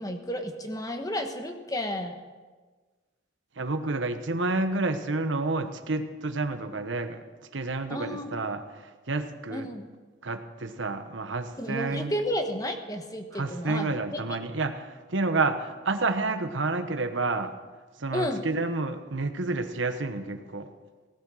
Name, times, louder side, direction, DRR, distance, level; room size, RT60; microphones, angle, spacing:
voice 1, 0.0-2.1 7.9-8.3 9.5-9.9 11.6-14.2 18.1-18.4, left 1 dB, 20° left, 5 dB, 1.2 m, -32 dB
voice 2, 3.6-7.2 7.5-9.7 10.2-12.1 13.3-17.5 18.0-20.7, right 3 dB, 70° right, 9 dB, 1.1 m, -29 dB
17.5 x 12.5 x 6.3 m, 1.4 s
head